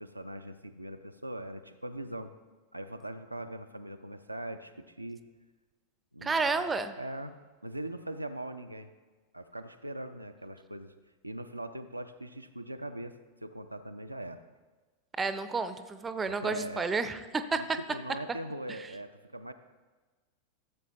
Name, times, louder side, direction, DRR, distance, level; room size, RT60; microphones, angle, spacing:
voice 1, 0.0-2.3 2.7-5.2 6.1-6.7 7.0-7.4 7.6-8.9 9.3-10.9 11.2-14.4 16.4-16.9 17.5-19.5, right 1 dB, 85° right, 7 dB, 0.5 m, -41 dB
voice 2, 6.2-6.9 15.2-17.2 17.5-17.8, right 4 dB, 15° right, 11 dB, 0.6 m, -30 dB
14.0 x 7.4 x 3.0 m, 1.3 s
figure-of-eight pair, 90°, 0 cm